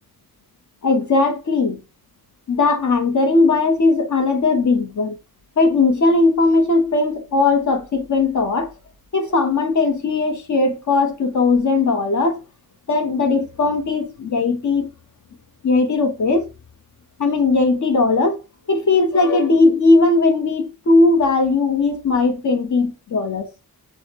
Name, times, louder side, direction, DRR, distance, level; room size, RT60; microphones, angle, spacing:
voice 1, 0.8-1.8 2.5-5.2 5.6-8.7 9.1-12.4 12.9-14.9 15.6-16.5 17.2-18.4 18.7-23.5, left 3 dB, 50° left, 0.8 m, -18 dB
6.1 x 2.1 x 2.8 m
wide cardioid pair, 170°, 37 cm